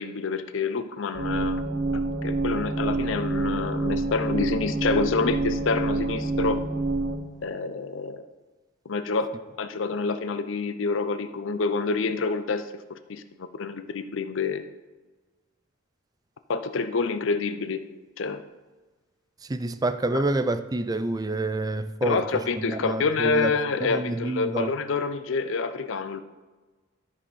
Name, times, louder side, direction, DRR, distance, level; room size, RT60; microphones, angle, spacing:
voice 1, 0.0-1.7 1.9-6.6 7.4-8.2 8.9-9.3 9.6-14.7 16.5-17.8 18.2-18.4 20.1-20.2 22.0-26.2, left 4 dB, 70° left, 0.5 m, -27 dB
sound 1, 1.1-7.1, right 2 dB, 50° right, 1.1 m, -27 dB
voice 2, 19.4-23.5 23.9-24.7, right 2 dB, 20° right, 0.4 m, -28 dB
13.0 x 4.3 x 5.4 m
head